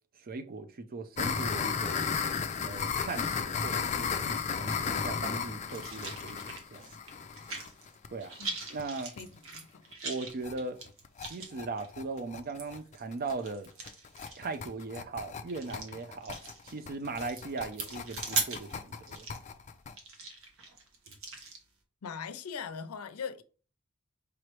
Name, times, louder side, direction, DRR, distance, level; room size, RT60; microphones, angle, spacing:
voice 1, 0.2-2.0 2.6-6.4 6.7-6.9 8.1-8.4 8.7-9.1 10.0-10.8 11.2-13.7 14.4-19.3, right 3 dB, 45° right, 0.4 m, -39 dB
sound 1, 1.2-8.8 9.2-9.3 9.5-9.6 9.9-10.0 10.3-10.5 10.9-19.9, left 6 dB, 30° left, 0.4 m, -34 dB
sound 2, 5.7-7.9 8.2-21.6, right 4 dB, 65° right, 1.1 m, -40 dB
voice 2, 9.2-9.9 22.0-23.4, left 6 dB, 90° left, 0.5 m, -41 dB
4.9 x 3.1 x 3.1 m
head